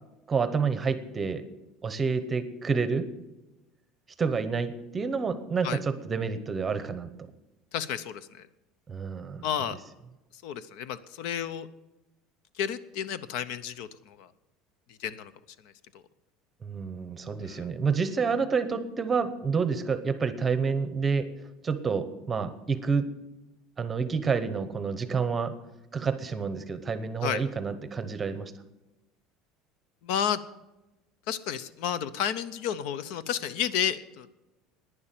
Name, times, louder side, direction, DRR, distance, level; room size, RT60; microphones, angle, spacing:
voice 1, 0.3-1.4 1.8-3.1 4.2-7.1 8.9-9.5 16.6-21.3 21.6-23.1 23.8-25.5 25.9-28.5, right 5 dB, 15° right, 11 dB, 0.8 m, -28 dB
voice 2, 7.7-8.5 9.4-9.8 10.3-11.7 12.5-14.3 15.0-15.3 15.9-16.0 17.4-17.7 27.2-27.4 30.0-30.4 31.3-34.3, left 9 dB, 60° left, 16 dB, 0.7 m, -31 dB
11.0 x 9.9 x 7.5 m, 1.0 s
cardioid pair, 170°, 0 cm